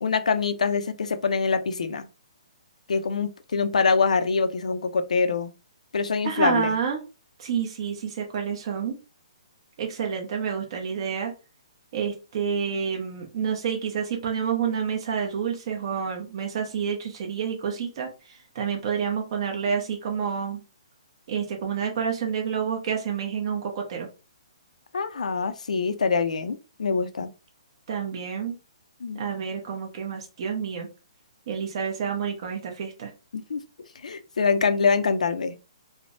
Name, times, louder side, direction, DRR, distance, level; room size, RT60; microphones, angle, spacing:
voice 1, 0.0-2.1 2.9-5.5 5.9-6.7 24.9-27.3 29.0-29.2 33.3-33.6 34.0-35.6, left 5 dB, 85° left, 0.4 m, -24 dB
voice 2, 6.2-7.0 7.4-9.0 9.8-11.3 11.9-20.6 21.3-24.1 27.9-28.6 29.2-30.9 31.5-33.1, right 7 dB, 45° right, 0.7 m, -29 dB
3.2 x 2.0 x 2.5 m
hypercardioid pair, 155°, 4 cm